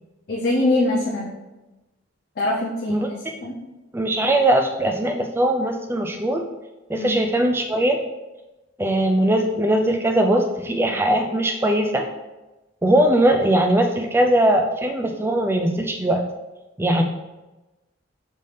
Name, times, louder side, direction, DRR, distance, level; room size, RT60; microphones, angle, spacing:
voice 1, 0.3-1.4 2.4-3.0 3.4-3.5 6.9-7.2, left 2 dB, 50° left, -4 dB, 0.6 m, -23 dB
voice 2, 2.9-3.4 3.9-6.4 6.9-8.0 8.8-12.1 12.8-16.2 16.8-17.0, right 1 dB, 10° right, 4 dB, 0.3 m, -20 dB
5.3 x 2.7 x 3.3 m, 1.1 s
head